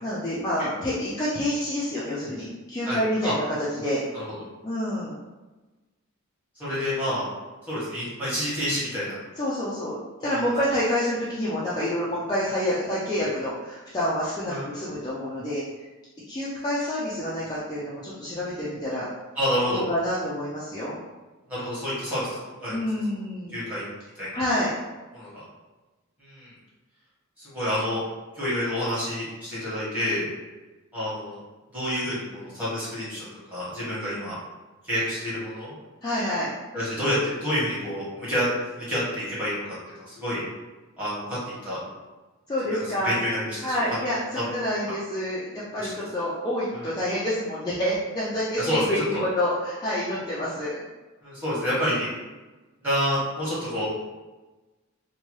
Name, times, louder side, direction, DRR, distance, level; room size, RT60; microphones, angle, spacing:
voice 1, 0.0-4.0 4.6-5.2 9.3-15.6 16.3-19.1 19.7-21.0 22.7-23.6 24.3-24.7 36.0-36.5 42.5-43.2 43.6-50.8, left 1 dB, 20° left, -8 dB, 0.4 m, -28 dB
voice 2, 2.8-3.3 4.1-4.2 6.6-7.3 7.7-9.2 10.3-10.4 14.5-14.7 19.4-19.8 21.5-22.3 22.6-22.7 23.5-23.8 24.1-24.3 25.1-25.3 26.2-26.5 27.4-28.0 28.3-30.3 30.9-31.4 31.7-34.3 34.8-35.7 36.7-38.5 38.7-40.4 41.0-41.8 42.7-42.8 43.0-43.7 45.8-45.9 46.7-46.9 48.6-48.8 49.1-49.2 51.2-52.1 52.8-53.9, equal, 10° right, -11 dB, 1.3 m, -28 dB
2.8 x 2.2 x 3.0 m, 1.2 s
head